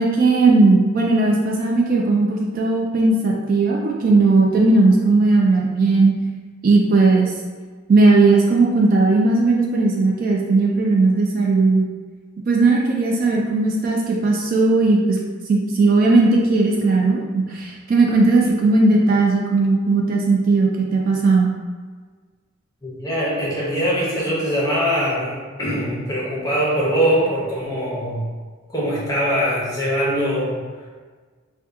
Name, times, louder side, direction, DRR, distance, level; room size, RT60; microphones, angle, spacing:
voice 1, 0.0-6.1 6.6-7.3 7.9-11.9 12.5-15.2 15.5-21.5, right 3 dB, 40° right, -1 dB, 0.3 m, -17 dB
voice 2, 22.8-28.2 28.7-30.6, equal, 15° left, -6 dB, 0.8 m, -22 dB
2.8 x 2.2 x 3.5 m, 1.5 s
head